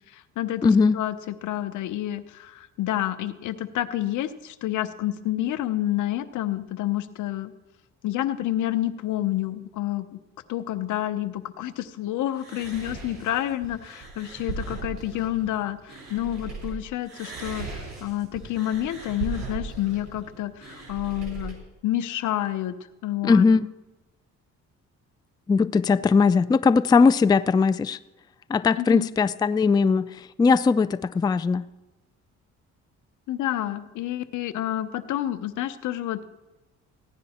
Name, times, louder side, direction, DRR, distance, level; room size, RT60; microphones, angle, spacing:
voice 1, 0.1-7.5 8.0-10.2 10.5-21.6 21.8-22.8 23.0-23.5 28.8-29.1 33.3-36.2, left 13 dB, 80° left, 11 dB, 0.8 m, -29 dB
voice 2, 0.6-1.0 23.2-23.7 25.5-28.0 28.5-30.1 30.4-31.7, left 5 dB, 15° left, 15 dB, 0.3 m, -19 dB
sound 1, 12.3-16.7 17.0-21.5, right 4 dB, 65° right, 4.6 m, -38 dB
15.5 x 10.5 x 4.3 m, 1.1 s
cardioid pair, 90°, 30 cm